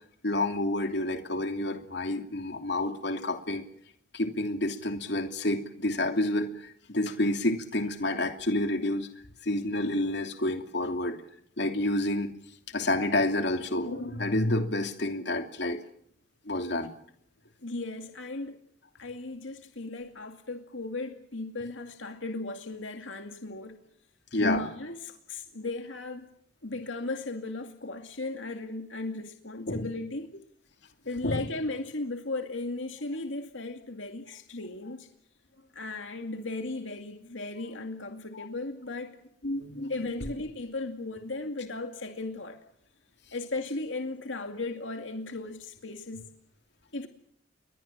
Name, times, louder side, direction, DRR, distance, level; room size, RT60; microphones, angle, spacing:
voice 1, 0.2-3.7 4.1-9.1 9.4-11.2 11.6-12.3 12.7-15.8 16.4-16.9 24.3-24.7 29.7-29.9 31.2-31.4 38.3-38.5 39.4-39.9 40.2-40.3, left 1 dB, 60° left, 2.9 m, -29 dB
voice 2, 17.6-18.6 18.9-23.8 24.4-26.3 26.6-30.3 31.1-35.1 35.7-39.2 39.9-42.6 43.3-46.2 46.9-47.1, left 2 dB, 80° left, 2.3 m, -36 dB
29.5 x 22.5 x 7.4 m
head